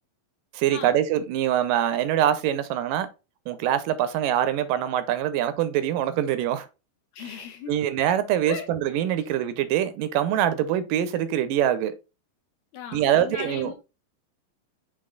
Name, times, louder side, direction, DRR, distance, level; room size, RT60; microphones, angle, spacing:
voice 1, 0.5-3.1 3.5-6.7 7.7-11.9 12.9-13.7, right 11 dB, 80° right, 2.1 m, -24 dB
voice 2, 7.1-7.7 8.5-8.7 12.7-13.7, left 7 dB, 70° left, 1.9 m, -36 dB
6.6 x 3.8 x 3.8 m
omnidirectional pair, 4.0 m